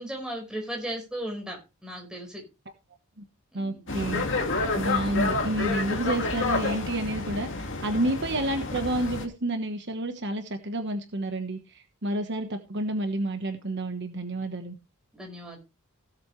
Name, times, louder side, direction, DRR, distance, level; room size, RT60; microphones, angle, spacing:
voice 1, 0.0-2.4 3.5-3.8 15.1-15.6, right 1 dB, 5° right, 1 dB, 4.8 m, -36 dB
voice 2, 3.5-4.2 4.7-14.8, right 1 dB, 50° right, 6 dB, 1.2 m, -30 dB
sound 1, 3.9-9.3, left 3 dB, 55° left, 2.2 m, -29 dB
17.5 x 7.8 x 3.2 m, 0.28 s
head